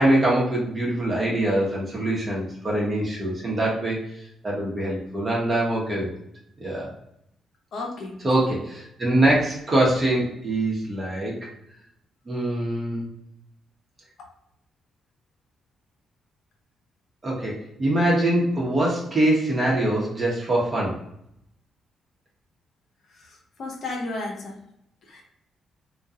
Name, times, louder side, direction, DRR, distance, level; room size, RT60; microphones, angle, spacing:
voice 1, 0.0-6.1 6.6-6.9 8.2-11.5 12.3-13.1 17.2-20.9, right 1 dB, 40° right, -4 dB, 0.9 m, -23 dB
voice 2, 7.7-8.2 23.2-24.6 25.1-25.2, left 2 dB, 60° left, 0 dB, 0.6 m, -33 dB
2.3 x 2.2 x 2.7 m, 0.76 s
hypercardioid pair, 40°, 0 cm